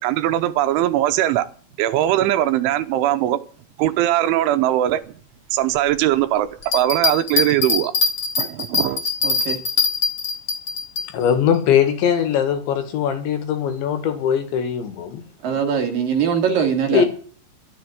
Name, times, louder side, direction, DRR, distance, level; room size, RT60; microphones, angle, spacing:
voice 1, 0.0-1.5 1.8-3.4 3.8-5.0 5.5-6.5 6.7-7.9 8.4-9.0, right 13 dB, 80° right, 10 dB, 3.2 m, -20 dB
sound 1, 6.6-11.1, left 4 dB, 40° left, 2.1 m, -22 dB
voice 2, 9.2-9.6 15.4-17.1, right 7 dB, 55° right, 4 dB, 3.0 m, -21 dB
voice 3, 11.1-15.2 16.9-17.1, left 8 dB, 70° left, 8 dB, 4.0 m, -20 dB
13.0 x 8.0 x 9.1 m, 0.43 s
omnidirectional pair, 5.6 m